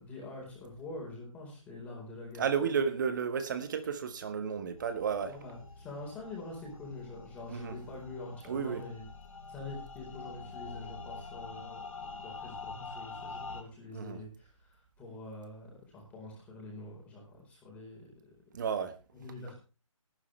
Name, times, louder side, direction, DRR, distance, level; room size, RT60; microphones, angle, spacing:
voice 1, 0.0-2.4 5.2-9.1 9.5-18.3 19.1-19.5, left 2 dB, 10° left, -2 dB, 4.4 m, -45 dB
voice 2, 2.4-5.3 7.5-7.7 8.5-8.8 13.9-14.2 18.5-18.9, right 6 dB, 35° right, 10 dB, 1.5 m, -32 dB
sound 1, 4.8-13.6, left 4 dB, 70° left, 4.0 m, -46 dB
18.5 x 9.8 x 3.3 m, 0.34 s
figure-of-eight pair, 160°, 18 cm